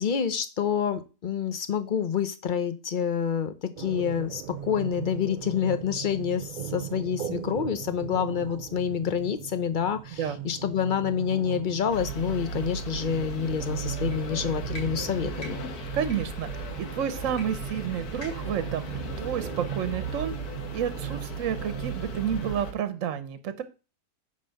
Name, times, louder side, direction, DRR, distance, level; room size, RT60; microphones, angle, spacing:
voice 1, 0.0-15.6, left 7 dB, 40° left, 11 dB, 0.8 m, -28 dB
sound 1, 3.8-22.5, right 10 dB, 90° right, 0.4 m, -39 dB
sound 2, 11.9-22.7, right 2 dB, 90° left, 1.7 m, -36 dB
sound 3, 14.0-14.2 14.7-14.9 15.3-15.5 16.0-16.2 17.3-17.4 17.7-17.8 18.2-18.5, equal, 60° left, 3.6 m, -42 dB
voice 2, 15.9-20.4 20.7-23.6, right 8 dB, 65° right, 12 dB, 1.1 m, -30 dB
9.4 x 3.9 x 6.4 m, 0.32 s
omnidirectional pair, 1.6 m